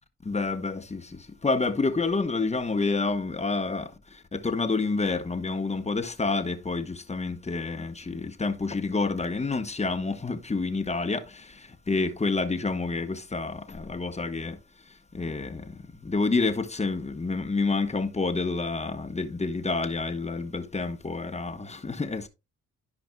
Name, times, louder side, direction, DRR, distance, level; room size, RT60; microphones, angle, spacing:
voice 1, 0.2-14.6 14.9-22.3, left 3 dB, 25° left, 1.1 m, -29 dB
13.5 x 5.1 x 2.3 m
cardioid pair, 75°, 29 cm